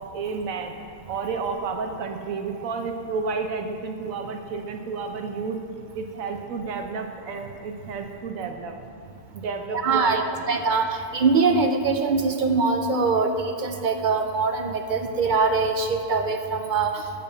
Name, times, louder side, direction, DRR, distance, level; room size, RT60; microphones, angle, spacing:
voice 1, 0.0-5.6 5.9-8.9 9.3-10.7 15.1-15.2, right 4 dB, 85° right, 5 dB, 1.3 m, -31 dB
voice 2, 9.8-10.2 10.5-17.0, right 4 dB, 60° right, 6 dB, 0.5 m, -23 dB
10.5 x 5.1 x 6.9 m, 2.5 s
omnidirectional pair, 1.4 m